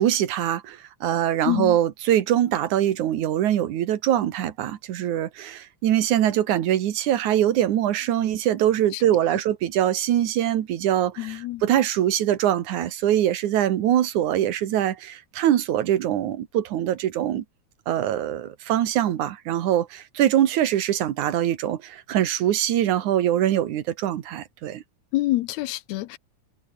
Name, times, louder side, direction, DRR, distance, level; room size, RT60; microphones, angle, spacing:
voice 1, 0.0-17.4 17.9-24.8, right 11 dB, 80° right, 2.9 m, -23 dB
voice 2, 1.5-1.8 8.9-9.0 11.2-11.7 25.1-26.2, left 17 dB, 80° left, 1.9 m, -26 dB
omnidirectional pair, 3.4 m